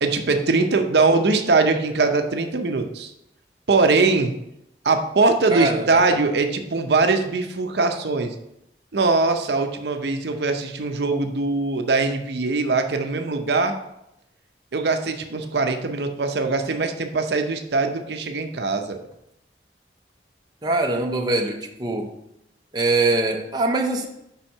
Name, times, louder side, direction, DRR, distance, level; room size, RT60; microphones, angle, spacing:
voice 1, 0.0-3.1 3.7-4.3 4.8-8.3 8.9-13.8 14.7-19.0, right 3 dB, 70° right, 6 dB, 0.6 m, -21 dB
voice 2, 5.5-5.9 20.6-22.1 22.7-24.1, right 2 dB, 25° right, 2 dB, 0.5 m, -22 dB
5.5 x 4.4 x 5.3 m, 0.83 s
head